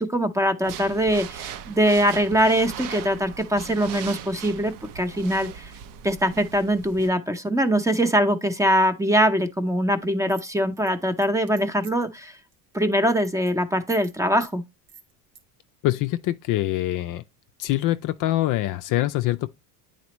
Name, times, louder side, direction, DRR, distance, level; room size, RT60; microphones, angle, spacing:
voice 1, 0.0-5.7 6.0-12.4 12.7-14.6, equal, 5° right, 0.7 m, -22 dB
sound 1, 0.6-7.1, right 8 dB, 50° right, 0.7 m, -39 dB
sound 2, 10.3-12.2 12.5-12.8 13.0-13.5 13.9-14.1 14.4-14.6 14.9-15.4, right 7 dB, 80° right, 2.2 m, -46 dB
voice 2, 15.8-17.2 17.6-19.5, left 15 dB, 50° left, 0.5 m, -24 dB
9.5 x 4.3 x 3.0 m
cardioid pair, 125°, 42 cm